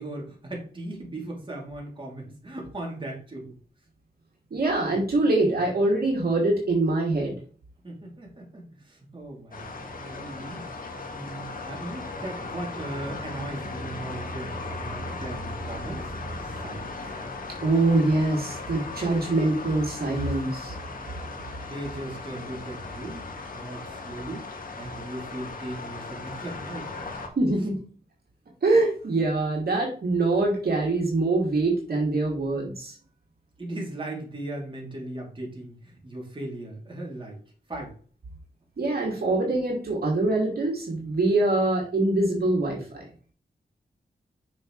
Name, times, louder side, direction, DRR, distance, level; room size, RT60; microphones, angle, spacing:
voice 1, 0.0-3.6 7.8-10.6 11.1-16.9 21.6-23.2 23.5-24.5 24.8-27.1 33.6-37.4 37.7-37.9, right 1 dB, 30° right, -1 dB, 3.0 m, -38 dB
voice 2, 4.5-7.3 17.6-20.8 27.4-27.7 28.6-32.9 38.8-43.1, right 2 dB, 65° right, -2 dB, 2.6 m, -24 dB
sound 1, 9.5-27.3, left 3 dB, 55° left, 1.8 m, -37 dB
6.5 x 6.1 x 3.2 m, 0.40 s
wide cardioid pair, 80°, 17 cm